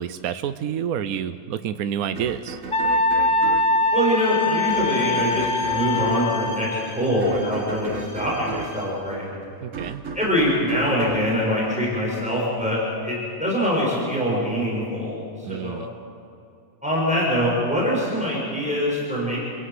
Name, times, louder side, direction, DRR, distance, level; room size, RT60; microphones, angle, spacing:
voice 1, 0.0-2.6 9.6-10.0 15.4-15.9, right 8 dB, 80° right, 11 dB, 1.2 m, -29 dB
sound 1, 2.2-12.4, right 4 dB, 65° right, 1.7 m, -36 dB
Wind instrument woodwind instrument, 2.7-6.8, left 2 dB, 35° left, 2.3 m, -22 dB
voice 2, 3.9-9.3 10.1-15.2 15.5-15.9 16.8-19.5, equal, 5° right, -5 dB, 7.2 m, -24 dB
Bowed string instrument, 4.1-9.0, left 2 dB, 80° left, 7.5 m, -41 dB
28.0 x 17.5 x 7.9 m, 2.5 s
omnidirectional pair, 1.5 m